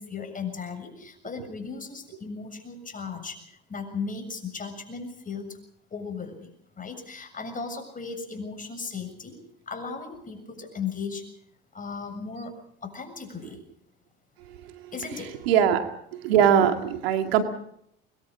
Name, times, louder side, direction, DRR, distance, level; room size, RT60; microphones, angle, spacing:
voice 1, 0.0-5.6 5.9-6.5 6.8-9.4 9.7-11.3 11.7-13.6 14.9-15.4, left 5 dB, 30° left, 7 dB, 7.1 m, -36 dB
voice 2, 14.5-15.9 16.1-17.4, right 8 dB, 90° right, 6 dB, 2.3 m, -23 dB
25.0 x 22.0 x 5.0 m, 0.71 s
supercardioid pair, 85°, 29 cm